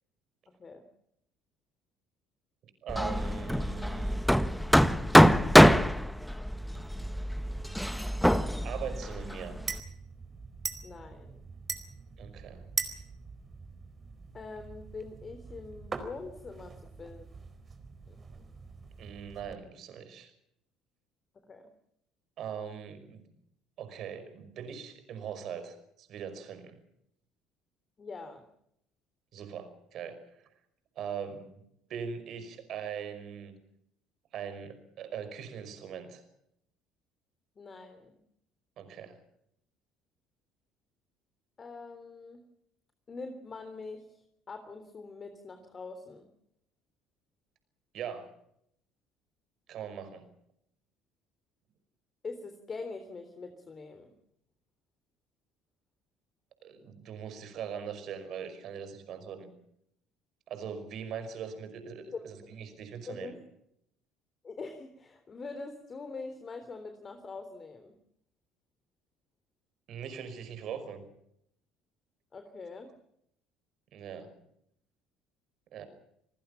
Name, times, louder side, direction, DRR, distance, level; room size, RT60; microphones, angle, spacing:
voice 1, 0.5-0.8 10.8-11.4 14.3-17.3 18.1-18.5 21.5-21.7 28.0-28.5 37.6-38.2 41.6-42.4 43.1-46.3 52.2-54.1 62.1-62.2 63.1-63.4 64.4-68.0 72.3-72.9, left 4 dB, 35° left, 8 dB, 3.5 m, -44 dB
voice 2, 2.8-4.2 8.6-9.6 12.2-12.6 19.0-20.3 22.4-23.3 23.8-26.8 29.3-30.5 31.0-31.6 31.9-33.6 34.3-36.2 38.8-39.2 47.9-48.3 49.7-50.3 56.6-59.5 60.5-63.3 69.9-71.1 73.9-74.3 75.7-75.8, right 7 dB, 55° right, 10 dB, 5.5 m, -41 dB
Hammer, 2.9-9.8, equal, ahead, 1.3 m, -24 dB
sound 1, 6.7-19.5, right 5 dB, 35° right, 4.4 m, -43 dB
28.5 x 20.0 x 5.8 m, 0.74 s
hypercardioid pair, 60°, 0 cm